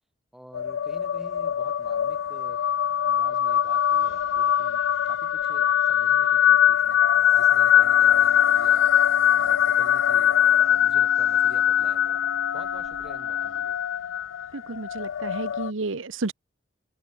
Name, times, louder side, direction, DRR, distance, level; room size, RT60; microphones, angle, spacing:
voice 1, 0.3-2.6 3.0-7.0 7.3-8.9 9.3-12.2 12.5-13.8, equal, ahead, 6.5 m, -49 dB
sound 1, 0.5-15.7, left 10 dB, 85° left, 0.4 m, -22 dB
Wind instrument woodwind instrument, 7.7-13.7, right 1 dB, 55° right, 3.3 m, -46 dB
voice 2, 14.5-16.3, right 3 dB, 90° right, 1.1 m, -31 dB
open air
head